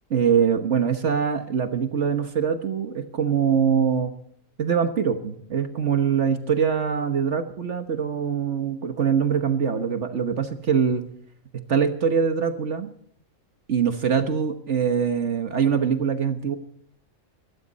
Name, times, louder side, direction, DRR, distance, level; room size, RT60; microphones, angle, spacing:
voice 1, 0.1-4.1 4.6-11.0 11.7-12.9 13.7-16.6, right 7 dB, 60° right, 8 dB, 1.5 m, -23 dB
23.5 x 14.0 x 4.1 m, 0.62 s
omnidirectional pair, 1.4 m